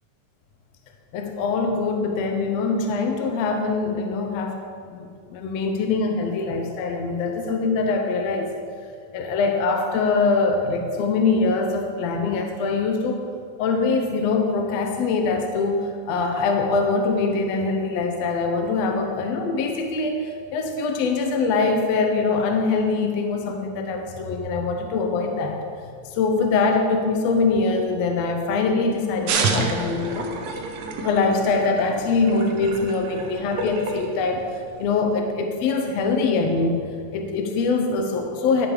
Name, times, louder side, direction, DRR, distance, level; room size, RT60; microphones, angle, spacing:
voice 1, 1.1-4.6 4.9-8.5 9.1-13.2 13.6-25.6 26.1-30.3 31.0-34.4 34.8-36.8 37.1-38.7, left 4 dB, 70° left, 4 dB, 1.7 m, -23 dB
sound 1, 29.3-34.9, right 4 dB, 70° right, 1.7 m, -29 dB
12.0 x 5.2 x 4.8 m, 2.3 s
omnidirectional pair, 3.4 m